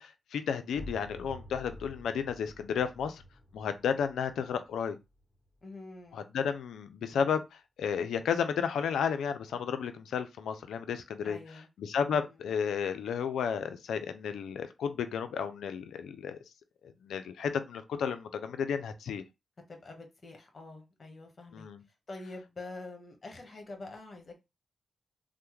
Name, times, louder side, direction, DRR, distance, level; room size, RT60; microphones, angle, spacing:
voice 1, 0.0-3.2 3.5-5.0 6.1-7.4 7.8-11.4 11.8-16.4 16.8-19.2 21.5-21.8, left 7 dB, 85° left, 0.4 m, -32 dB
sound 1, 0.7-6.2, equal, 5° left, 1.5 m, -50 dB
voice 2, 5.6-6.2 11.2-11.7 12.1-12.4 19.7-21.7 22.1-24.3, left 2 dB, 45° left, 1.2 m, -46 dB
3.2 x 2.1 x 3.1 m
supercardioid pair, 45°, 0 cm